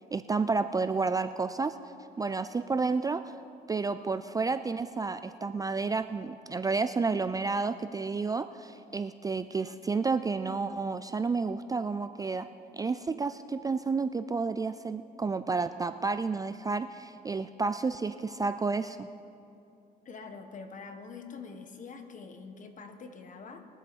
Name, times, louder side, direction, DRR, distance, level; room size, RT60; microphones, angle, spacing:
voice 1, 0.1-1.8 2.2-3.3 3.7-12.5 12.7-19.1, right 4 dB, 20° right, 11 dB, 0.4 m, -31 dB
voice 2, 20.0-23.6, left 5 dB, 45° left, 6 dB, 1.5 m, -45 dB
22.0 x 7.9 x 4.2 m, 2.7 s
supercardioid pair, 85°, 19 cm